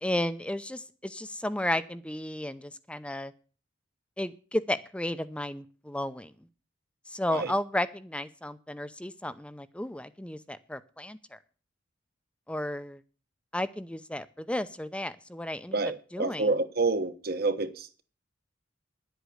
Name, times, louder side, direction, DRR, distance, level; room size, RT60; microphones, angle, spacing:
voice 1, 0.0-3.3 4.2-6.3 7.1-11.4 12.5-13.0 13.5-16.6, left 1 dB, 5° left, 0.6 m, -33 dB
voice 2, 15.7-18.0, right 3 dB, 55° right, 1.2 m, -28 dB
11.0 x 8.2 x 7.9 m
head